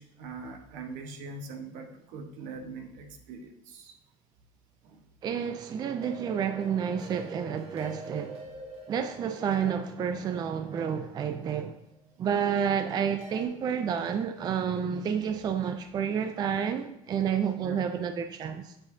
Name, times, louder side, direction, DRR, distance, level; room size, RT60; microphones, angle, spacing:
voice 1, 0.0-3.9 4.8-5.0 17.6-17.8, right 3 dB, 70° right, 1.2 m, -42 dB
voice 2, 5.2-8.4 8.9-11.8 12.2-18.7, right 7 dB, 30° right, 0.4 m, -30 dB
sound 1, 6.0-12.1 13.2-13.5, right 2 dB, 45° right, 1.4 m, -46 dB
7.6 x 7.1 x 2.7 m
cardioid pair, 135°, 14 cm